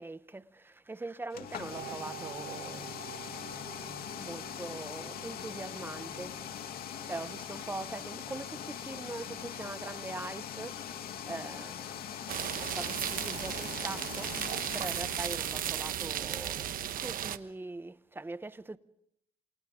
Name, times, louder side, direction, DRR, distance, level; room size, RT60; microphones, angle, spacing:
voice 1, 0.0-2.9 4.2-6.4 7.0-11.0 11.3-12.3 12.6-18.8, right 2 dB, 10° right, 0.9 m, -42 dB
sound 1, 1.3-15.9, left 9 dB, 65° left, 2.4 m, -42 dB
sound 2, 1.7-16.5, right 10 dB, 75° right, 7.0 m, -52 dB
sound 3, 12.3-17.4, right 10 dB, 55° right, 1.1 m, -35 dB
28.5 x 27.5 x 3.7 m
cardioid pair, 110°, 17 cm